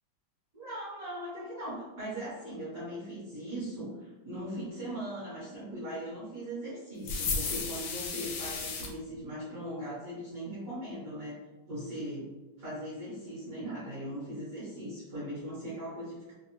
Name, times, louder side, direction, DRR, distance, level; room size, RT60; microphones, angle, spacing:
voice 1, 0.5-11.4 11.7-12.3 12.6-16.3, right 1 dB, 50° right, -8 dB, 1.4 m, -39 dB
sound 1, 7.1-8.9, left 4 dB, 80° left, 1.2 m, -34 dB
3.3 x 2.1 x 2.9 m, 1.1 s
omnidirectional pair, 2.1 m